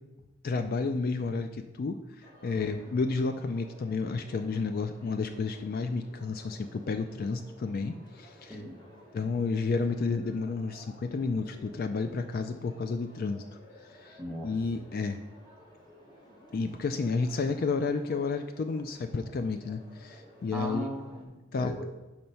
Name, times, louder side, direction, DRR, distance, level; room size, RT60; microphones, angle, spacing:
voice 1, 0.4-8.6 9.1-13.4 13.8-15.2 16.5-20.9 21.5-21.8, left 4 dB, 45° left, 8 dB, 0.3 m, -31 dB
sound 1, 2.2-21.2, equal, 20° left, 1.3 m, -54 dB
voice 2, 2.5-2.9 8.5-8.7 14.2-14.5 20.5-21.9, right 1 dB, 5° right, -1 dB, 0.9 m, -38 dB
6.4 x 4.4 x 5.4 m, 1.1 s
head